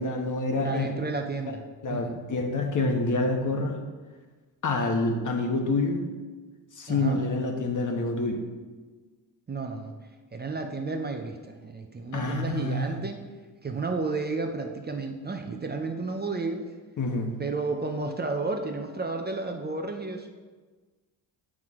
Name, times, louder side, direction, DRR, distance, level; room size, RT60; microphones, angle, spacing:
voice 1, 0.0-0.9 1.8-3.8 4.6-6.0 6.7-8.4 12.1-13.0 17.0-17.3, left 2 dB, 45° left, 4 dB, 1.2 m, -27 dB
voice 2, 0.6-2.2 6.9-7.2 9.5-9.9 10.3-13.2 13.6-16.7 17.4-20.3, right 3 dB, 20° right, 4 dB, 0.7 m, -32 dB
7.5 x 6.3 x 3.7 m, 1.4 s
cardioid pair, 85°, 44 cm